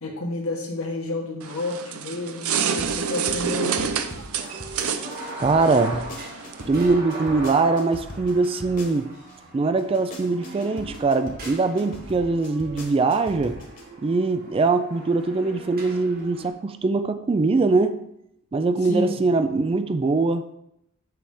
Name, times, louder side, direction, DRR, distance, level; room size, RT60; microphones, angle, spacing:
voice 1, 0.0-3.9 18.8-19.2, left 2 dB, 75° left, -1 dB, 1.6 m, -30 dB
sound 1, 1.4-6.7, right 6 dB, 75° right, 0.6 m, -28 dB
sound 2, 2.6-9.3 9.8-13.8, left 1 dB, 40° left, 1.4 m, -40 dB
sound 3, 4.4-16.5, right 2 dB, 45° right, 1.4 m, -39 dB
voice 2, 5.4-6.1 6.7-9.1 9.5-13.5 14.0-18.0 18.5-20.5, right 3 dB, 25° right, 9 dB, 0.3 m, -22 dB
7.7 x 3.4 x 4.9 m, 0.79 s
head